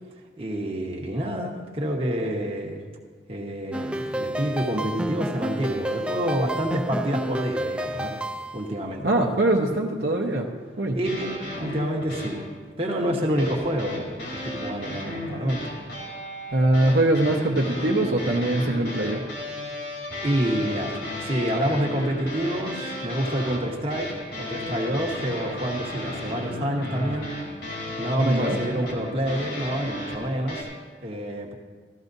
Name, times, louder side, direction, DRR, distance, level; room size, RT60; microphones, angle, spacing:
voice 1, 0.4-2.8 3.3-8.1 8.5-9.0 10.9-12.4 12.8-15.7 20.2-20.9 21.2-24.1 24.4-27.3 28.0-30.6 31.0-31.6, right 1 dB, 30° right, -1 dB, 1.2 m, -27 dB
sound 1, 3.7-8.7, right 1 dB, 5° right, 0.3 m, -30 dB
voice 2, 9.0-10.4 10.8-11.0 16.5-19.2 28.2-28.6, right 1 dB, 65° right, 0 dB, 0.8 m, -22 dB
sound 2, 11.0-12.5 13.4-30.6, left 1 dB, 75° left, 3.6 m, -34 dB
14.5 x 13.5 x 2.7 m, 1.5 s
head